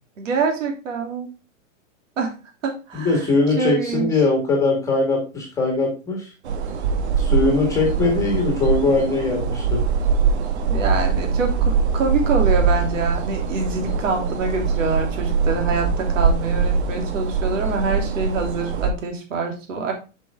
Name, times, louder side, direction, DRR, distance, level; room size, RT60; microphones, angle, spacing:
voice 1, 0.2-1.3 2.2-2.3 2.6-3.2 3.6-4.1 10.7-19.9, right 4 dB, 70° right, 2 dB, 3.1 m, -25 dB
voice 2, 2.9-6.3 7.2-9.8, left 3 dB, 10° left, 1 dB, 1.7 m, -21 dB
sound 1, 6.4-18.9, right 5 dB, 55° right, 1.4 m, -22 dB
8.0 x 5.7 x 3.6 m, 0.31 s
supercardioid pair, 175°, 39 cm